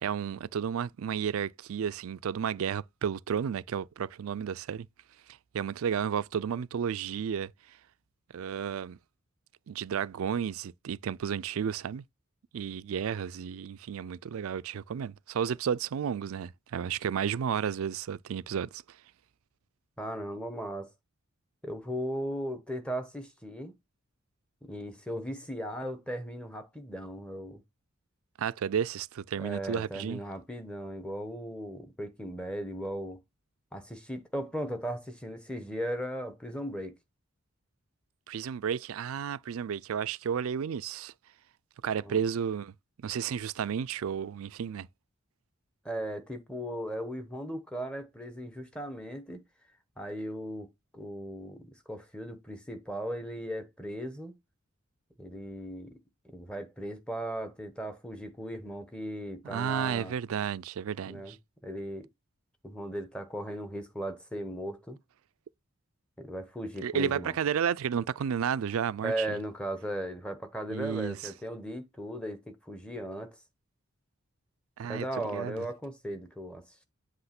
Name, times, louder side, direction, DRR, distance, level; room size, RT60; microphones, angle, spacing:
voice 1, 0.0-4.9 5.5-7.5 8.3-9.0 9.7-12.0 12.5-18.8 28.4-30.2 38.3-41.1 41.8-42.7 43.0-44.9 59.5-61.4 66.8-69.4 70.7-71.2 74.8-75.1 75.3-75.6, right 7 dB, 80° right, 0.4 m, -32 dB
voice 2, 20.0-20.9 21.6-23.7 24.6-27.6 29.4-33.2 33.7-36.9 42.0-42.2 45.8-49.4 50.0-50.7 50.9-54.3 55.2-55.9 56.2-60.2 61.1-61.4 61.6-62.1 62.6-65.0 66.2-67.4 69.0-73.3 74.9-76.8, equal, 5° left, 1.0 m, -37 dB
7.9 x 3.0 x 5.8 m
head